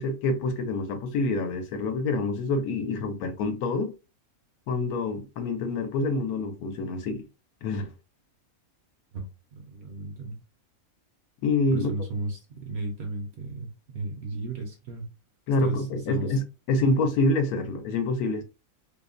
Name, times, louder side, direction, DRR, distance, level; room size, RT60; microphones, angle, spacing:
voice 1, 0.0-3.9 4.7-7.2 7.6-7.9 11.4-11.9 15.5-18.4, left 2 dB, 90° left, 1.1 m, -27 dB
voice 2, 9.1-10.4 11.7-15.1 15.6-16.4, right 2 dB, 60° right, 0.7 m, -35 dB
2.8 x 2.1 x 2.4 m
omnidirectional pair, 1.5 m